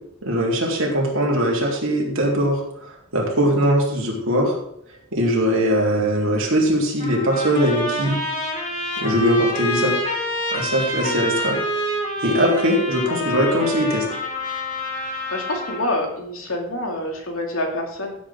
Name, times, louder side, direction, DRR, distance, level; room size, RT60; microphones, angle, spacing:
voice 1, 0.2-2.6 3.1-4.5 5.1-8.2 9.0-10.0 10.5-11.6 12.2-14.1, equal, 65° right, -2 dB, 3.5 m, -20 dB
Trumpet, 7.0-15.9, left 1 dB, 35° left, 3.8 m, -27 dB
voice 2, 15.0-18.2, left 1 dB, 70° left, 2 dB, 2.6 m, -27 dB
16.0 x 8.1 x 3.7 m, 0.74 s
head